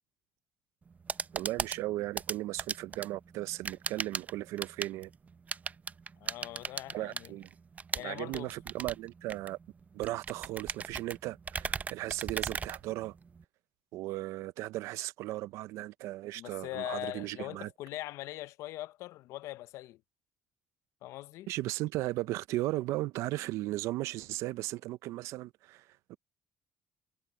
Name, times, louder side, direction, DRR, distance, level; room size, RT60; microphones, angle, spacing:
sound 1, 0.8-13.4, right 5 dB, 30° right, 0.6 m, -39 dB
voice 1, 1.3-5.1 6.9-7.5 8.0-9.6 9.9-13.1 13.9-17.7 21.5-26.2, right 17 dB, 80° right, 0.5 m, -36 dB
voice 2, 6.2-7.3 7.9-8.5 16.3-20.0 21.0-21.5, left 16 dB, 80° left, 0.6 m, -41 dB
supercardioid pair, 85°, 5 cm